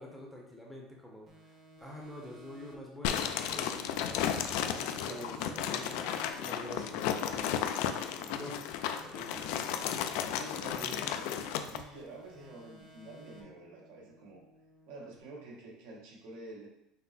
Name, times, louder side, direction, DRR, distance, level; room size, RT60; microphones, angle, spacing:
voice 1, 0.0-7.5 8.3-8.6 9.0-9.5 10.8-11.4, left 1 dB, ahead, -2 dB, 0.7 m, -47 dB
sound 1, 1.3-4.5 4.8-8.1 8.4-11.6 11.9-15.2, equal, 35° right, 0.9 m, -57 dB
sound 2, 3.0-11.8, left 9 dB, 70° left, 0.3 m, -34 dB
voice 2, 5.0-5.7 8.2-8.5 10.3-14.4 14.9-16.7, right 2 dB, 80° right, -3 dB, 1.4 m, -49 dB
5.7 x 2.1 x 4.0 m, 0.81 s
cardioid pair, 165°, 0 cm